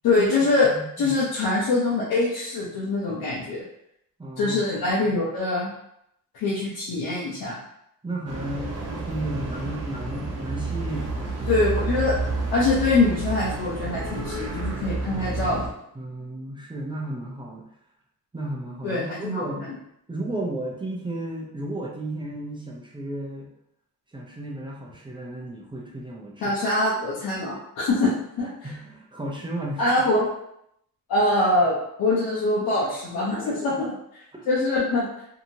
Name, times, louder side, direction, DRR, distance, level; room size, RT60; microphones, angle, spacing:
voice 1, 0.0-0.7 1.0-3.6 4.4-5.7 6.3-7.6 11.5-12.1 12.5-15.6 18.8-19.4 26.4-28.1 28.4-28.5 29.8-30.3 31.1-33.9 34.5-35.1, left 2 dB, 80° left, -6 dB, 0.8 m, -23 dB
voice 2, 0.6-1.2 4.2-4.6 5.0-5.1 8.0-11.5 15.9-17.7 18.3-19.8 20.1-23.5 24.1-26.6 28.0-28.1 28.6-30.0 33.4-33.8 34.3-34.5, right 1 dB, 15° right, -3 dB, 0.5 m, -34 dB
sound 1, 8.3-15.7, right 3 dB, 45° right, 0.8 m, -30 dB
2.8 x 2.7 x 2.7 m, 0.76 s
cardioid pair, 120°, 36 cm